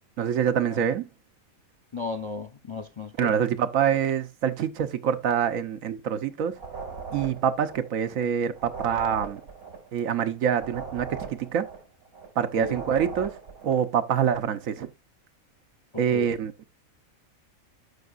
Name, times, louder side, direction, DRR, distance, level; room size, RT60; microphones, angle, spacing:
voice 1, 0.2-1.1 3.2-6.5 7.1-9.4 9.9-11.6 12.4-13.4 13.6-14.9 16.0-16.5, right 8 dB, 75° right, 1.2 m, -25 dB
voice 2, 1.9-3.4 12.6-12.8 15.9-16.3, left 2 dB, 25° left, 0.7 m, -34 dB
sound 1, 6.5-8.3 8.5-12.3 12.5-13.9, right 5 dB, 90° right, 3.1 m, -39 dB
12.0 x 5.8 x 2.5 m
omnidirectional pair, 1.4 m